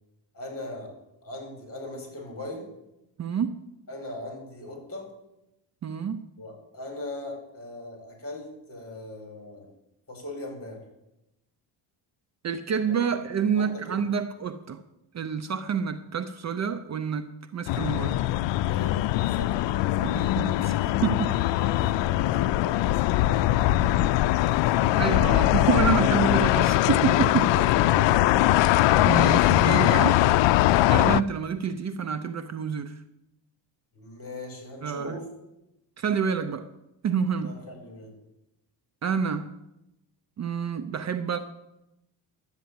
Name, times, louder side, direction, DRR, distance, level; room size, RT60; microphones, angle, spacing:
voice 1, 0.3-0.9 1.2-2.7 3.9-5.1 6.4-9.7 10.1-10.8 12.9-13.0 13.5-14.0 18.6-19.5 19.9-20.2 21.5-24.8 25.8-26.8 27.5-28.5 33.9-35.3 37.4-38.1, left 1 dB, 30° left, 3 dB, 5.1 m, -39 dB
voice 2, 3.2-3.6 5.8-6.2 12.4-14.8 15.1-18.2 20.0-21.4 21.8-21.9 24.9-27.5 29.0-30.2 30.9-33.0 34.8-35.2 36.0-36.7 37.0-37.6 39.0-39.5 40.4-41.4, right 7 dB, 40° right, 10 dB, 0.6 m, -28 dB
sound 1, 17.7-31.2, left 15 dB, 80° left, 0.5 m, -21 dB
11.5 x 8.2 x 9.6 m, 0.90 s
cardioid pair, 140°, 44 cm